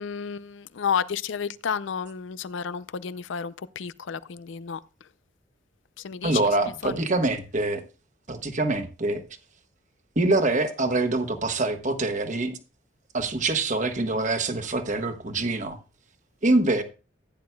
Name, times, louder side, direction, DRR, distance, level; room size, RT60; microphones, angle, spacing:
voice 1, 0.0-4.8 6.0-7.1, left 7 dB, 75° left, 0.5 m, -31 dB
voice 2, 6.2-7.8 8.3-9.2 10.2-12.6 13.1-15.8 16.4-16.8, right 2 dB, 40° right, 1.2 m, -25 dB
15.0 x 9.6 x 2.3 m
head